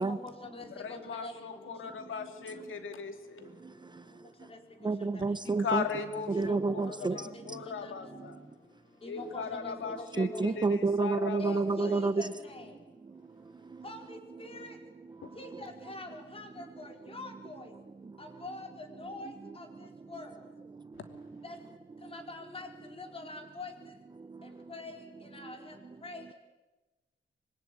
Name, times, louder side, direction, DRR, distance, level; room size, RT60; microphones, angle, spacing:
voice 1, 0.0-1.8 4.4-4.6 5.0-5.4 6.5-8.1 9.0-10.6 11.4-12.7 13.8-14.8 15.4-17.7 18.2-20.4 21.4-21.6 22.0-23.7 24.4-25.8 26.0-26.3, left 2 dB, 30° left, 4 dB, 4.5 m, -45 dB
voice 2, 0.8-3.5 5.6-8.4 9.0-11.9 15.2-15.3, left 6 dB, 85° left, 7 dB, 2.9 m, -38 dB
voice 3, 2.2-2.7 3.4-4.5 4.8-5.9 6.3-7.6 8.1-8.5 10.1-12.3 13.1-13.8 15.2-15.4 18.0-18.2 19.8-20.1 20.7-21.4 22.0-22.1 24.2-24.7 25.4-25.5, right 3 dB, 20° right, 12 dB, 0.9 m, -32 dB
25.5 x 23.0 x 9.3 m, 1.2 s
wide cardioid pair, 155°, 20 cm